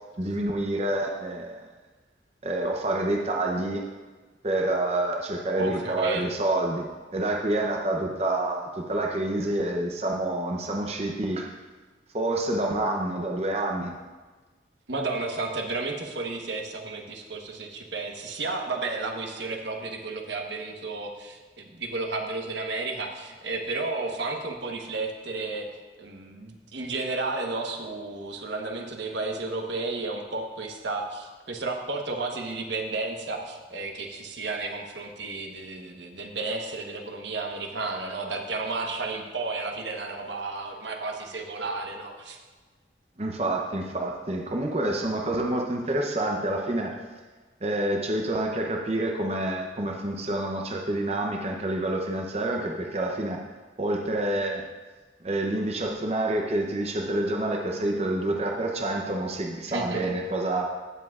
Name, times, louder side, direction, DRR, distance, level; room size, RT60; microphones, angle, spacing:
voice 1, 0.2-1.6 2.4-3.8 4.4-6.9 7.1-11.5 12.1-13.9 43.2-47.0 47.6-53.4 53.8-54.7 55.2-60.6, right 1 dB, 35° right, 1 dB, 0.7 m, -28 dB
voice 2, 5.6-6.2 14.9-25.7 26.0-42.4 59.7-60.1, right 3 dB, 80° right, 2 dB, 1.1 m, -32 dB
16.0 x 7.5 x 2.4 m, 1.3 s
head